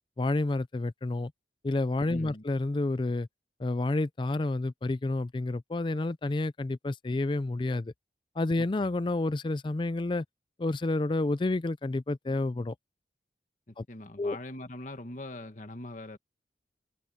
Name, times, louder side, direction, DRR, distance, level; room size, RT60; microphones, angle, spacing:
voice 1, 0.2-1.3 1.6-3.3 3.6-7.9 8.4-10.2 10.6-12.7 13.8-13.9 14.2-14.4, left 2 dB, 25° left, 0.4 m, -29 dB
voice 2, 2.1-2.4 8.6-8.7 13.7-16.2, left 1 dB, 45° left, 1.9 m, -42 dB
head